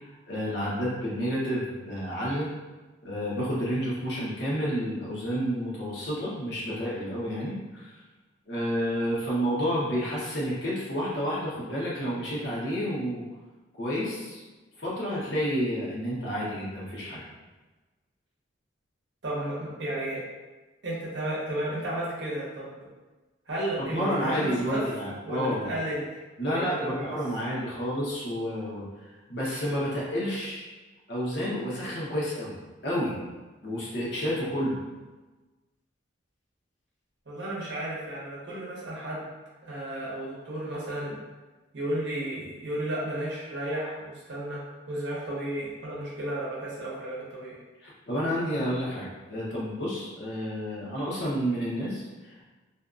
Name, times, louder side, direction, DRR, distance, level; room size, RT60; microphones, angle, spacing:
voice 1, 0.3-2.5 3.0-7.9 8.5-13.2 13.8-14.4 14.8-17.2 23.8-25.7 26.4-28.8 29.3-30.7 31.1-32.5 32.8-33.2 33.6-34.8 47.8-52.4, equal, 55° left, -7 dB, 0.8 m, -30 dB
voice 2, 19.2-20.2 20.8-22.8 23.5-24.8 25.2-26.2 26.4-27.1 37.3-39.3 39.6-41.1 41.7-44.6 44.9-47.6, right 1 dB, 60° right, -6 dB, 0.8 m, -33 dB
2.6 x 2.3 x 2.4 m, 1.2 s
head